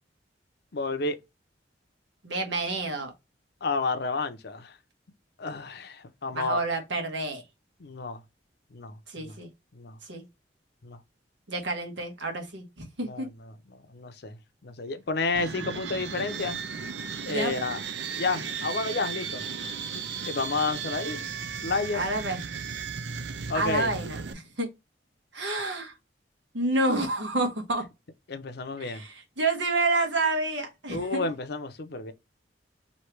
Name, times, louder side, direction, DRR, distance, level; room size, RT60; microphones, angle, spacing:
voice 1, 0.7-1.2 3.6-4.8 5.4-6.6 7.8-8.2 8.7-9.3 9.7-10.0 10.8-11.0 13.0-13.5 13.9-14.4 14.6-16.6 17.3-17.8 18.1-19.4 19.9-21.3 21.6-22.0 23.5-23.9 28.3-29.0 30.9-32.1, left 3 dB, 60° left, 0.7 m, -31 dB
voice 2, 2.2-3.1 6.3-7.4 9.1-9.5 10.1-10.2 11.5-13.3 17.3-17.5 21.9-22.4 23.5-24.7 25.3-25.9 26.5-27.8 28.8-31.3, right 2 dB, 85° right, 1.4 m, -29 dB
sound 1, 15.3-24.3, right 6 dB, 65° right, 0.5 m, -35 dB
3.2 x 2.8 x 4.5 m
head